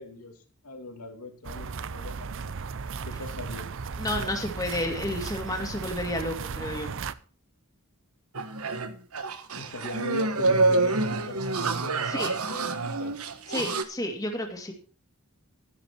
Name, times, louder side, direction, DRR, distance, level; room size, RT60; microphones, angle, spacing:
voice 1, 0.0-2.5 3.0-3.7 9.5-13.1, left 2 dB, 85° left, 3 dB, 2.6 m, -41 dB
sound 1, 1.4-7.1, right 5 dB, 60° right, 0.6 m, -36 dB
voice 2, 4.0-6.9 12.1-12.3 13.5-14.7, left 1 dB, 15° left, 1 dB, 2.1 m, -31 dB
sound 2, 8.3-13.8, right 3 dB, 80° right, 1.3 m, -27 dB
12.5 x 11.0 x 4.6 m, 0.37 s
head